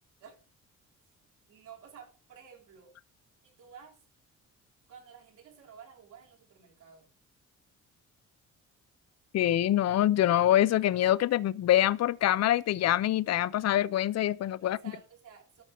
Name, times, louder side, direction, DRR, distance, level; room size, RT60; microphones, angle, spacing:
voice 1, 1.5-2.9 3.4-4.0 4.9-7.1 14.6-15.6, right 7 dB, 80° right, 7.1 m, -52 dB
voice 2, 9.3-14.8, left 12 dB, 60° left, 0.6 m, -25 dB
13.5 x 5.7 x 7.0 m
cardioid pair, 90°, 30 cm